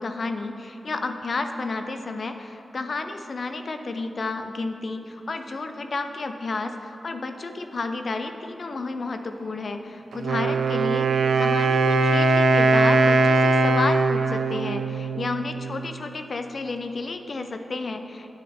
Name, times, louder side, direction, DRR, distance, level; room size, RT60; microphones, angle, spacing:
voice 1, 0.0-18.3, left 3 dB, 50° left, 7 dB, 0.5 m, -31 dB
Wind instrument woodwind instrument, 10.1-15.9, right 3 dB, 90° right, 0.3 m, -21 dB
8.7 x 6.1 x 4.3 m, 2.9 s
wide cardioid pair, 145°, 0 cm